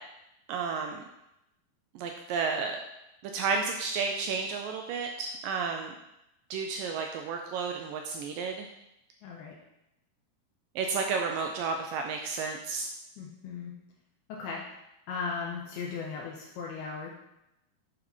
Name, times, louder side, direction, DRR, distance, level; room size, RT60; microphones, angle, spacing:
voice 1, 0.5-1.0 2.0-2.8 3.3-6.0 6.5-8.7 10.8-12.9, right 5 dB, 85° right, 3 dB, 2.0 m, -32 dB
voice 2, 9.2-9.5 13.2-13.7 14.3-14.6 15.1-17.1, left 5 dB, 80° left, -3 dB, 2.8 m, -37 dB
9.2 x 4.1 x 4.3 m, 0.86 s
omnidirectional pair, 4.5 m